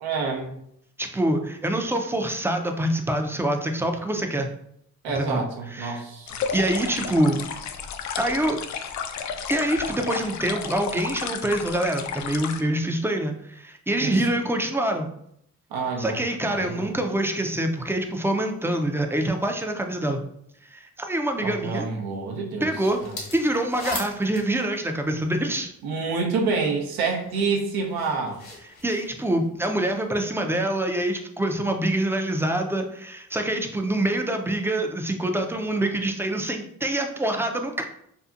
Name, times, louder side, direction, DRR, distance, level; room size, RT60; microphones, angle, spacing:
voice 1, 0.0-0.6 5.0-6.4 14.0-14.2 15.7-16.2 16.5-16.9 21.4-22.7 23.0-23.1 25.8-28.4, right 4 dB, 75° right, 2 dB, 0.7 m, -27 dB
voice 2, 1.0-4.5 5.2-6.0 6.5-7.5 8.2-8.6 9.5-15.1 16.0-20.2 20.6-21.9 22.6-23.0 23.3-25.7 28.8-37.9, right 1 dB, 5° right, 4 dB, 0.4 m, -25 dB
sound 1, 6.3-12.6, left 6 dB, 50° left, 0.4 m, -32 dB
sound 2, 22.7-25.8 26.5-30.1, left 2 dB, 70° left, 1.1 m, -39 dB
2.7 x 2.4 x 2.4 m, 0.71 s
hypercardioid pair, 40°, 37 cm